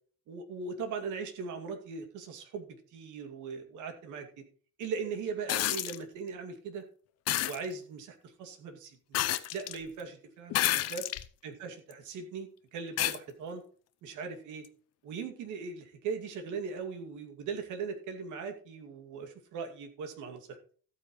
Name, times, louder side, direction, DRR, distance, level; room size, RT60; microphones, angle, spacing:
voice 1, 0.3-4.3 4.8-6.9 7.5-9.2 9.5-11.1 11.4-13.6 14.0-14.7 15.0-20.6, right 5 dB, 85° right, 5 dB, 2.4 m, -39 dB
sound 1, 5.5-6.0 7.3-7.6 9.1-9.8 10.5-11.3 11.9-12.0 13.0-13.2 14.6-14.7, left 14 dB, 60° left, 0.8 m, -29 dB
14.0 x 9.2 x 3.1 m, 0.43 s
cardioid pair, 170°, 29 cm